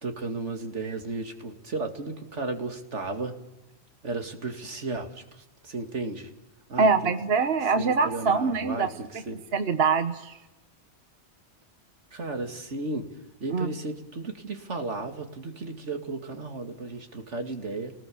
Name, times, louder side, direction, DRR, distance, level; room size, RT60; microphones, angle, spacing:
voice 1, 0.0-3.3 4.0-6.3 6.7-7.1 7.8-9.4 12.1-13.1 13.4-17.9, right 3 dB, 80° right, 5 dB, 2.6 m, -34 dB
voice 2, 6.8-8.9 9.5-10.4 13.5-13.7, right 4 dB, 60° right, 9 dB, 1.3 m, -24 dB
28.5 x 19.5 x 7.1 m, 1.0 s
omnidirectional pair, 1.2 m